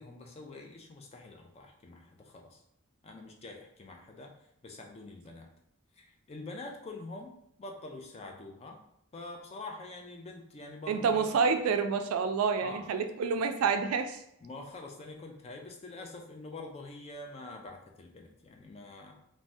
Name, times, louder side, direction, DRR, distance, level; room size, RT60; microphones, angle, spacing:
voice 1, 0.0-2.6 3.0-4.3 4.6-5.5 6.0-8.8 9.1-11.3 12.6-12.9 14.4-19.3, left 2 dB, 30° left, 2 dB, 0.3 m, -45 dB
voice 2, 10.9-14.2, right 5 dB, 75° right, 7 dB, 0.3 m, -28 dB
2.6 x 2.1 x 3.2 m, 0.73 s
head